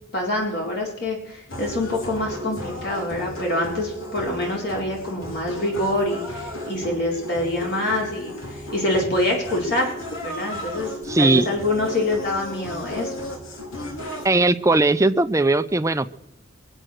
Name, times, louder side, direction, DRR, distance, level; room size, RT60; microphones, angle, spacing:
voice 1, 0.1-10.0 10.2-10.9 11.2-13.1, left 1 dB, 55° left, -1 dB, 3.9 m, -25 dB
sound 1, 1.5-14.3, equal, 90° left, 3.0 m, -34 dB
voice 2, 11.1-11.5 14.2-16.1, right 2 dB, 15° right, 11 dB, 0.6 m, -18 dB
22.0 x 8.9 x 6.4 m, 0.85 s
head